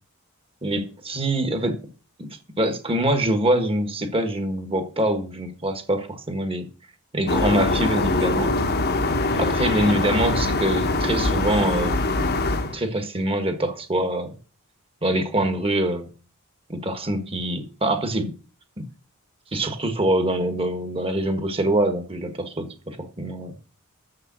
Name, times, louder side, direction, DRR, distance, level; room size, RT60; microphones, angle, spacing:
voice 1, 0.6-1.8 2.2-2.3 2.6-6.7 7.1-8.5 9.3-12.1 12.6-14.4 15.0-16.1 16.7-18.3 18.8-18.9 19.5-23.6, right 1 dB, 25° right, 1.5 m, -24 dB
sound 1, 7.3-12.8, left 2 dB, 45° left, 1.1 m, -23 dB
7.3 x 6.7 x 7.5 m
head